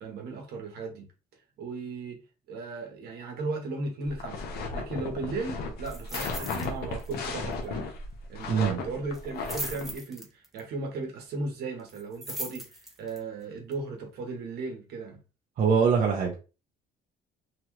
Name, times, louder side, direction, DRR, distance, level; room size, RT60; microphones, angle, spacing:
voice 1, 0.0-1.1 1.6-2.2 2.5-4.5 4.7-7.9 8.3-12.7 13.0-15.2, right 3 dB, 70° right, 1.1 m, -36 dB
sound 1, 4.1-9.9, left 4 dB, 70° left, 0.8 m, -35 dB
sound 2, 5.8-6.7 7.0-7.3 7.5-7.6 9.1-10.6 11.9-13.2 13.7-13.8, right 1 dB, ahead, 0.7 m, -39 dB
voice 2, 8.5-8.8 15.6-16.3, right 6 dB, 50° right, 0.7 m, -23 dB
2.9 x 2.3 x 3.1 m
cardioid pair, 110°, 17 cm